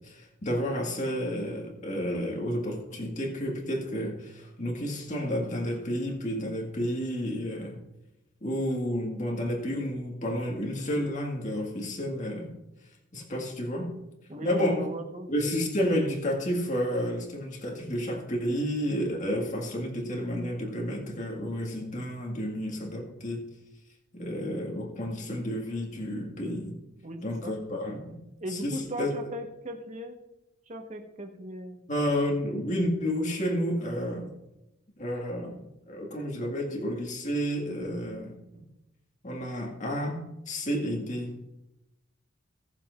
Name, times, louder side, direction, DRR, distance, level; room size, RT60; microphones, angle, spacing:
voice 1, 0.0-7.8 8.4-12.5 13.1-13.9 14.4-14.8 15.3-23.5 24.1-26.8 27.2-28.2 28.5-29.1 31.9-34.3 35.0-38.6 39.2-41.3, equal, 40° left, 0 dB, 1.9 m, -31 dB
voice 2, 14.3-15.3 27.0-27.6 28.4-30.2 30.7-31.8, right 1 dB, 35° right, 3 dB, 1.3 m, -38 dB
18.0 x 7.2 x 2.6 m, 0.93 s
head